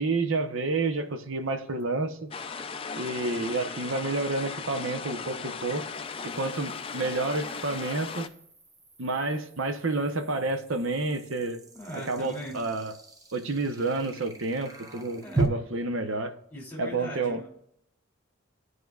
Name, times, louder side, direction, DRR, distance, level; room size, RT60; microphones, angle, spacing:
voice 1, 0.0-2.2 3.0-5.9 6.2-8.3 9.0-11.6 11.9-12.9 13.3-16.3 16.8-17.4, right 3 dB, 75° right, 7 dB, 0.8 m, -29 dB
sound 1, 1.8-1.9 5.3-15.4, right 3 dB, 15° right, 0.7 m, -39 dB
sound 2, 2.3-8.3, left 5 dB, 25° left, 0.4 m, -37 dB
voice 2, 11.7-12.6 15.1-15.4 16.5-17.5, equal, 10° left, -3 dB, 2.6 m, -40 dB
12.5 x 4.8 x 2.3 m, 0.71 s
head